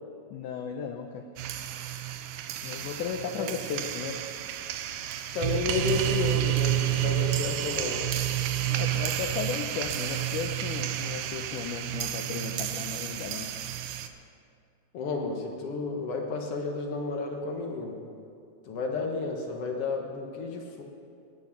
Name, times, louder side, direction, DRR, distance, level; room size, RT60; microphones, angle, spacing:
voice 1, 0.3-1.3 2.6-4.2 8.7-13.5, left 7 dB, 90° left, 4 dB, 1.7 m, -35 dB
sound 1, 1.4-14.1, right 12 dB, 80° right, 2.2 m, -30 dB
voice 2, 5.3-8.0 14.9-18.0 18.6-20.8, left 3 dB, 70° left, 2 dB, 1.4 m, -32 dB
17.5 x 10.5 x 5.9 m, 2.4 s
omnidirectional pair, 4.5 m